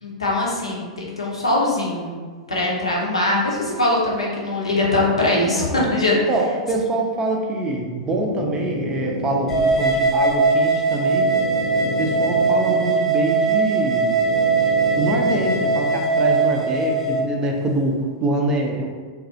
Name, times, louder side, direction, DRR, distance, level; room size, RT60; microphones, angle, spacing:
voice 1, 0.0-2.2 2.5-6.2, left 2 dB, 85° left, -4 dB, 0.6 m, -22 dB
voice 2, 5.5-5.9 6.3-11.3 11.8-14.2 14.9-18.9, right 2 dB, 20° right, 0 dB, 0.4 m, -24 dB
sound 1, 7.5-15.8, left 1 dB, 60° right, 0.7 m, -31 dB
sound 2, 9.5-17.2, right 4 dB, 15° left, 0.7 m, -20 dB
2.3 x 2.0 x 2.6 m, 1.5 s
figure-of-eight pair, 100°, 3 cm